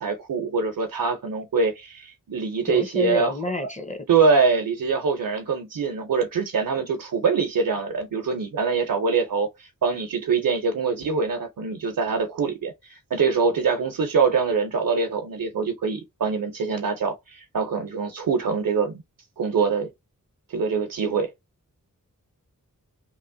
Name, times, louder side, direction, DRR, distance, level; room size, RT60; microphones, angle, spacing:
voice 1, 0.0-3.3 4.1-19.0 19.4-19.9 20.5-21.3, right 5 dB, 80° right, 0.7 m, -24 dB
voice 2, 2.7-4.1, left 3 dB, 20° left, 0.6 m, -29 dB
3.0 x 2.1 x 2.6 m
wide cardioid pair, 70°, 33 cm